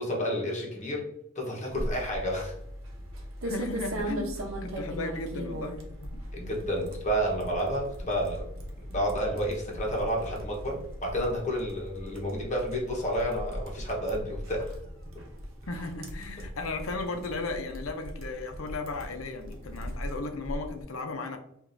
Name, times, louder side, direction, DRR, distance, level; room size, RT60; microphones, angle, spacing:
voice 1, 0.0-2.6 6.3-8.5 8.8-14.8, equal, 35° left, -1 dB, 1.1 m, -30 dB
sound 1, 1.7-20.8, equal, 70° right, 0.8 m, -39 dB
voice 2, 3.4-6.2 15.7-21.4, left 3 dB, 75° left, 6 dB, 0.6 m, -36 dB
4.9 x 2.5 x 2.6 m, 0.76 s
head